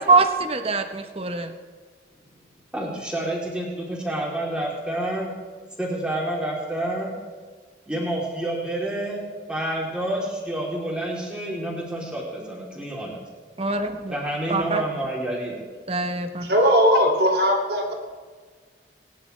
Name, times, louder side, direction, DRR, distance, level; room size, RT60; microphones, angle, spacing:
voice 1, 0.1-1.5 13.6-14.2 14.5-14.8 15.9-16.5, right 3 dB, 30° right, 7 dB, 1.0 m, -23 dB
voice 2, 2.7-5.3 5.8-7.1 7.9-13.2 14.1-15.6, right 1 dB, 5° right, -4 dB, 3.2 m, -29 dB
voice 3, 16.4-17.9, equal, 60° right, 1 dB, 2.7 m, -19 dB
21.0 x 10.5 x 3.3 m, 1.5 s
head